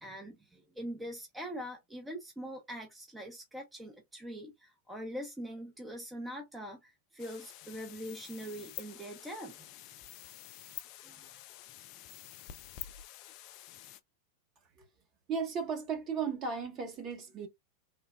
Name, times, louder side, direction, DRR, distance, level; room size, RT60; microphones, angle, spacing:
voice 1, 0.0-9.6 11.0-11.2, equal, 10° right, 0.7 m, -43 dB
sound 1, 7.2-14.0, left 13 dB, 45° left, 0.3 m, -48 dB
voice 2, 15.3-17.5, right 6 dB, 35° right, 1.0 m, -35 dB
3.2 x 2.1 x 2.3 m
figure-of-eight pair, 90°, 0 cm